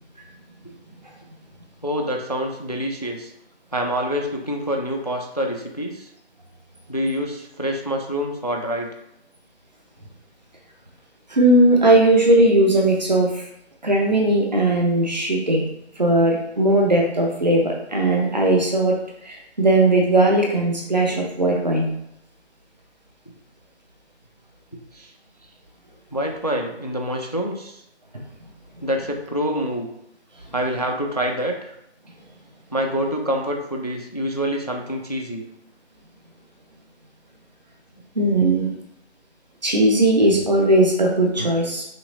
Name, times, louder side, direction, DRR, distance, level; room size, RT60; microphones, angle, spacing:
voice 1, 1.8-3.3 3.7-6.1 6.9-8.9 21.1-21.3 24.9-25.1 26.1-27.8 28.8-29.9 30.5-31.7 32.7-35.5 41.4-41.5, equal, 40° left, 3 dB, 0.4 m, -26 dB
voice 2, 11.3-13.5 13.8-15.6 16.0-21.9 38.1-38.7 39.6-41.8, right 1 dB, 40° right, 0 dB, 0.8 m, -18 dB
5.7 x 2.9 x 2.6 m, 0.78 s
figure-of-eight pair, 160°, 34 cm